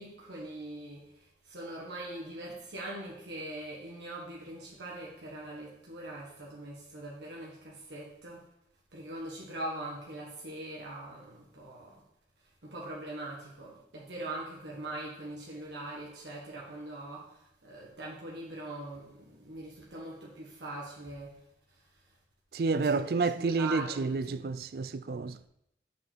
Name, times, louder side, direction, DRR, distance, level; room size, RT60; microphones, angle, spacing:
voice 1, 0.0-8.5 8.9-12.0 12.6-22.0 22.7-23.1 23.4-24.5, right 2 dB, 85° right, 1.6 m, -42 dB
voice 2, 22.5-25.5, right 4 dB, 55° right, 0.4 m, -30 dB
6.9 x 5.5 x 6.1 m
head